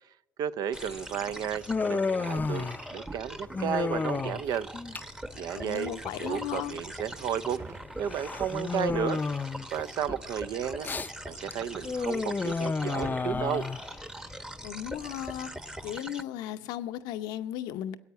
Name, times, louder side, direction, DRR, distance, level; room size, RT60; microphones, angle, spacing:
voice 1, 0.4-1.6 1.9-4.7 5.3-7.6 8.0-9.2 9.7-10.9 11.3-13.7, right 9 dB, 70° right, 0.6 m, -33 dB
Human voice, 0.7-16.0, left 4 dB, 25° left, 0.5 m, -33 dB
sound 1, 0.7-16.2, right 1 dB, 10° right, 0.9 m, -42 dB
sound 2, 1.5-14.7, right 4 dB, 50° right, 2.4 m, -53 dB
voice 2, 5.5-6.7 14.6-15.5 15.8-18.0, left 12 dB, 85° left, 0.7 m, -35 dB
16.0 x 8.4 x 9.4 m
supercardioid pair, 80°, 7 cm